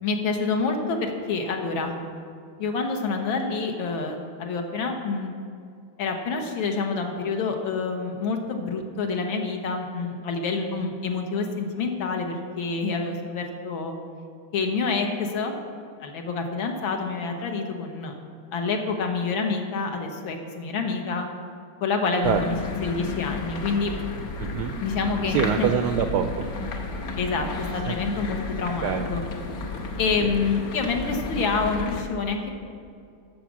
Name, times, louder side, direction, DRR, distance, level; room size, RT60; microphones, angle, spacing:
voice 1, 0.0-1.9 2.6-5.3 6.0-14.0 14.5-15.6 16.0-18.1 18.5-21.3 21.8-23.9 24.8-25.7 27.2-27.5 27.7-29.2 30.0-32.6, left 4 dB, 70° left, 3 dB, 1.8 m, -27 dB
sound 1, 22.2-32.0, left 3 dB, 55° left, 1.2 m, -33 dB
voice 2, 24.4-24.7 25.3-26.5 27.9-28.0 28.8-29.1 30.2-30.3, right 8 dB, 80° right, 7 dB, 0.9 m, -25 dB
12.5 x 5.1 x 7.2 m, 2.4 s
omnidirectional pair, 2.3 m